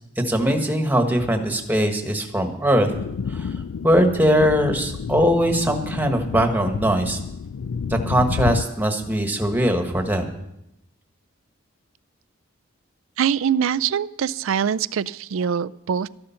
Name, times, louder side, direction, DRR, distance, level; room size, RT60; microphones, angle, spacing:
voice 1, 0.2-2.9 3.3-3.5 3.8-7.2 7.9-10.3, equal, 10° right, 5 dB, 1.4 m, -21 dB
sound 1, 2.9-8.6, left 6 dB, 85° left, 0.4 m, -30 dB
voice 2, 13.2-16.1, right 8 dB, 70° right, 18 dB, 0.4 m, -23 dB
13.5 x 11.5 x 5.8 m, 0.85 s
head